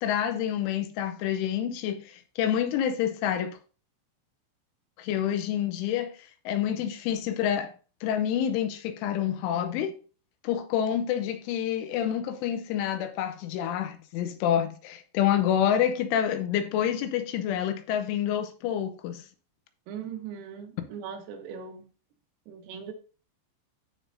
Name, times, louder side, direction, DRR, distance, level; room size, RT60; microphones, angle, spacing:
voice 1, 0.0-3.6 5.0-7.7 8.0-9.9 10.4-19.3, left 9 dB, 85° left, 3.0 m, -28 dB
voice 2, 19.9-21.8 22.5-22.9, right 7 dB, 85° right, 4.0 m, -39 dB
14.5 x 5.3 x 2.6 m
omnidirectional pair, 5.8 m